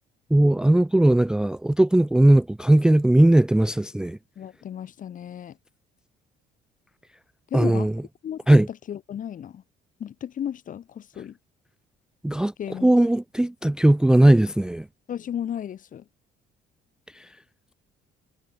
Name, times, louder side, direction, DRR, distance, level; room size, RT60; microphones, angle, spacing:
voice 1, 0.3-4.2 7.5-7.9 8.5-8.7 12.2-12.5 12.8-14.8, right 1 dB, 5° right, 0.4 m, -18 dB
voice 2, 4.4-5.6 7.5-7.9 8.2-9.6 10.0-11.4 12.6-12.9 15.1-16.0, left 9 dB, 50° left, 4.4 m, -34 dB
cardioid pair, 110°, 17 cm